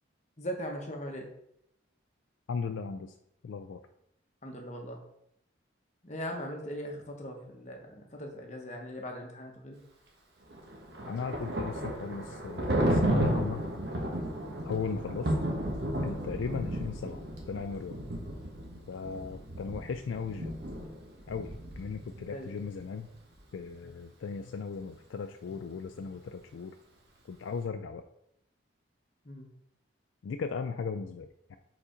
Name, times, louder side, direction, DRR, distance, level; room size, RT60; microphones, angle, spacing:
voice 1, 0.4-1.3 4.4-5.0 6.0-9.8 14.4-14.6 22.3-22.5 29.2-29.5, equal, 35° left, 2 dB, 1.0 m, -40 dB
voice 2, 2.5-3.2 3.4-3.8 11.0-13.6 14.6-15.4 16.0-18.0 18.9-20.5 21.3-23.1 23.5-26.8 27.3-28.0 30.2-31.6, left 5 dB, 80° left, 7 dB, 0.3 m, -37 dB
Thunder, 10.5-22.3, right 1 dB, 55° right, 1.1 m, -33 dB
4.9 x 4.1 x 5.0 m, 0.76 s
head